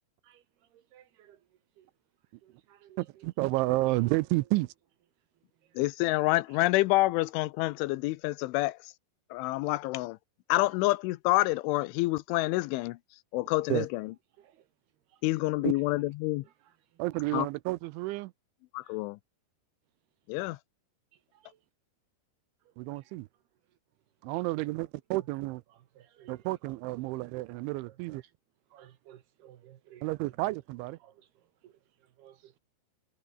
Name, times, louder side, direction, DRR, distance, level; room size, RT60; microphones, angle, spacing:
voice 1, 0.9-1.4 1.8-1.9 2.4-3.0 14.4-14.5 26.0-26.3 28.7-30.0 31.0-31.1 31.6-31.7 32.2-32.6, right 11 dB, 65° right, 3.0 m, -56 dB
voice 2, 3.0-4.7 13.7-13.9 15.6-15.7 17.0-18.3 22.8-23.3 24.2-25.6 26.3-28.2 30.0-31.0, right 20 dB, 80° right, 2.9 m, -31 dB
voice 3, 5.8-8.8 9.3-10.2 10.5-13.0 13.3-14.1 15.2-16.4 17.3-17.5 18.7-19.2 20.3-20.6, left 20 dB, 80° left, 3.1 m, -27 dB
omnidirectional pair, 5.6 m